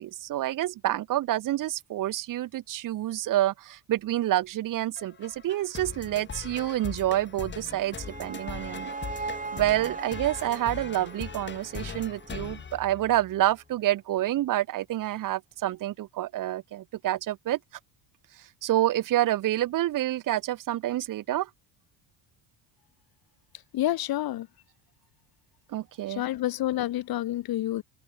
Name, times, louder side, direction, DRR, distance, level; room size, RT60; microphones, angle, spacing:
voice 1, 0.0-8.9 9.5-17.6 18.6-21.5 25.7-26.2, right 14 dB, 50° right, 0.8 m, -28 dB
sound 1, 5.0-13.5, left 6 dB, 25° left, 1.3 m, -41 dB
sound 2, 7.6-12.7, right 4 dB, 20° right, 3.1 m, -40 dB
voice 2, 23.7-24.5 26.1-27.8, left 14 dB, 60° left, 1.6 m, -28 dB
cardioid pair, 105°, 42 cm